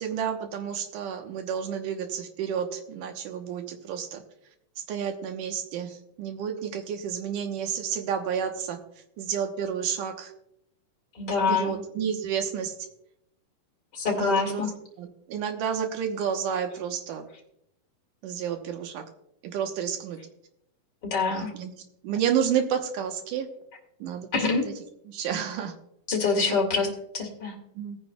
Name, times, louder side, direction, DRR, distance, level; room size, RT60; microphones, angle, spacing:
voice 1, 0.0-4.2 4.9-8.8 9.2-10.3 11.5-12.7 14.1-14.6 15.0-17.2 18.2-19.0 19.4-20.2 21.3-21.7 22.0-23.5 24.0-24.7 25.1-25.7 26.5-26.6 27.8-28.0, right 8 dB, 75° right, 5 dB, 2.6 m, -30 dB
voice 2, 11.2-11.8 13.9-14.7 21.1-21.5 24.3-24.6 26.1-26.9 27.1-27.5, left 4 dB, 35° left, 0 dB, 2.7 m, -25 dB
19.0 x 9.7 x 2.3 m, 0.79 s
omnidirectional pair, 3.9 m